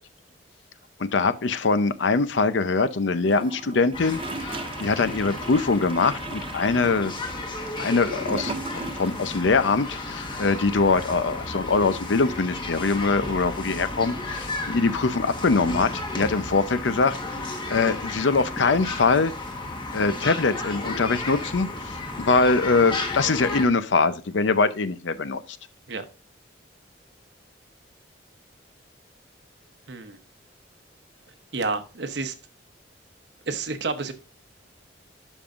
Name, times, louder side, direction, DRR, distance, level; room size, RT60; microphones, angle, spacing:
voice 1, 1.0-7.1 7.8-8.6 9.0-17.4 17.7-19.3 19.9-25.4, left 4 dB, 75° left, 0.6 m, -23 dB
Gurgling / Toilet flush, 3.3-9.3 9.6-9.7, right 3 dB, 30° right, 0.6 m, -37 dB
sound 1, 3.9-23.7, left 2 dB, 25° left, 1.3 m, -33 dB
voice 2, 29.9-30.2 31.5-32.3 33.5-34.1, right 3 dB, 65° right, 0.9 m, -29 dB
11.5 x 5.5 x 2.5 m
head